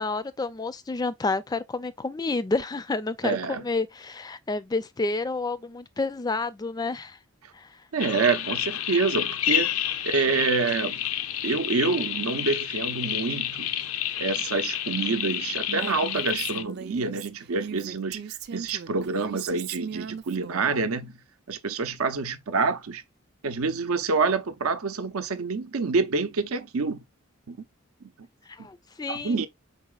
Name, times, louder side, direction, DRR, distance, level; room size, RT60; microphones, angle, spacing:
voice 1, 0.0-7.2 7.5-7.8 28.5-29.4, left 3 dB, 20° left, 0.3 m, -30 dB
voice 2, 3.2-3.6 7.9-9.7 10.1-11.1 11.4-13.7 14.2-21.2 21.5-23.0 23.4-27.0 27.5-27.6 28.0-28.1 29.1-29.5, right 4 dB, 90° right, 0.6 m, -27 dB
sound 1, 8.0-16.6, left 11 dB, 85° left, 0.5 m, -29 dB
Female speech woman speaking, 15.7-20.8, right 7 dB, 50° right, 0.4 m, -38 dB
4.7 x 4.0 x 2.3 m
head